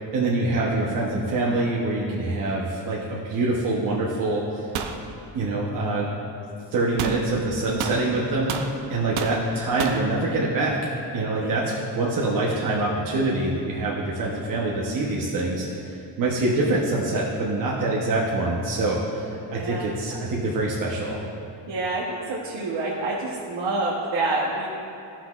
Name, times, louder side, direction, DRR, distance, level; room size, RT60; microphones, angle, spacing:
voice 1, 0.1-4.7 5.3-6.1 6.7-8.6 8.9-21.2, right 2 dB, 45° right, -4 dB, 0.9 m, -25 dB
sound 1, 4.7-5.0 7.0-7.2 7.8-8.7 9.2-9.4 9.8-10.0, right 7 dB, 85° right, 0.7 m, -30 dB
voice 2, 19.5-19.8 21.7-22.0 22.3-24.7, right 2 dB, 70° right, -4 dB, 1.1 m, -27 dB
14.0 x 5.9 x 2.4 m, 2.7 s
cardioid pair, 175°, 46 cm